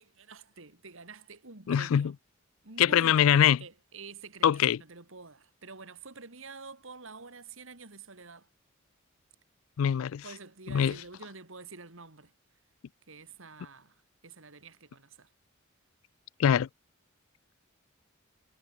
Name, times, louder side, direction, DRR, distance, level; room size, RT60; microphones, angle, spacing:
voice 1, 0.0-2.1 2.6-8.5 10.2-12.3 13.1-15.3, right 4 dB, 70° right, 2.7 m, -48 dB
voice 2, 1.7-2.1 2.8-3.6 4.4-4.8 9.8-10.2 10.7-10.9 16.4-16.7, left 9 dB, 75° left, 0.3 m, -23 dB
head